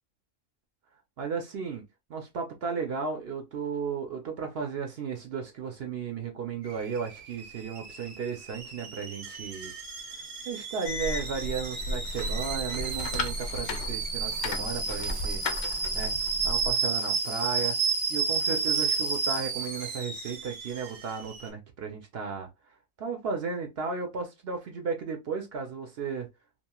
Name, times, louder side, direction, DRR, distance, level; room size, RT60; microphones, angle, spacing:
voice 1, 1.2-1.8 2.1-9.7 10.4-15.4 15.9-16.1 16.4-17.8 18.1-22.5 23.0-26.3, right 5 dB, 60° right, 0.8 m, -34 dB
Alarm / Boiling, 6.6-21.5, right 4 dB, 80° right, 1.2 m, -32 dB
sound 1, 10.9-16.7, left 2 dB, 70° left, 0.9 m, -34 dB
3.0 x 2.4 x 2.2 m
omnidirectional pair, 1.2 m